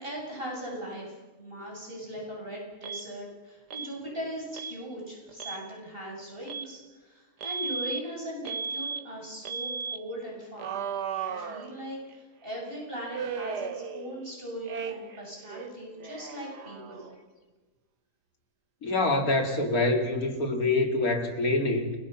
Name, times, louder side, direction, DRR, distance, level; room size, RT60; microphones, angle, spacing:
voice 1, 0.0-10.8 11.2-17.1, equal, 35° right, -2 dB, 7.4 m, -39 dB
Alarm, 2.8-3.0 3.7-3.9 4.5-4.8 5.3-5.6 6.5-6.7 7.4-8.0 8.5-9.0 9.5-10.0 10.6-12.1 13.1-14.3 14.7-15.2 15.5-17.2, right 6 dB, 85° right, 1.9 m, -35 dB
voice 2, 18.8-22.0, left 2 dB, 65° left, 4 dB, 3.5 m, -25 dB
30.0 x 22.5 x 5.9 m, 1.3 s
omnidirectional pair, 1.7 m